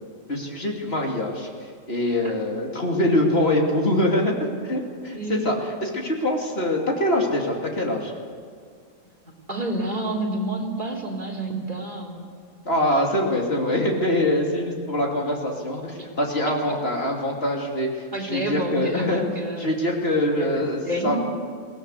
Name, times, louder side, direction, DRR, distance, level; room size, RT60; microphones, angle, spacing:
voice 1, 0.3-1.5 1.9-4.3 4.6-5.5 5.8-8.1 12.6-19.2 19.6-21.2, left 1 dB, 45° left, 0 dB, 2.9 m, -24 dB
voice 2, 5.1-5.4 9.5-12.2 16.6-16.7 18.1-19.7 20.1-20.5 20.8-21.2, right 1 dB, 35° right, -2 dB, 3.5 m, -29 dB
22.0 x 17.5 x 8.1 m, 2.1 s
omnidirectional pair, 1.5 m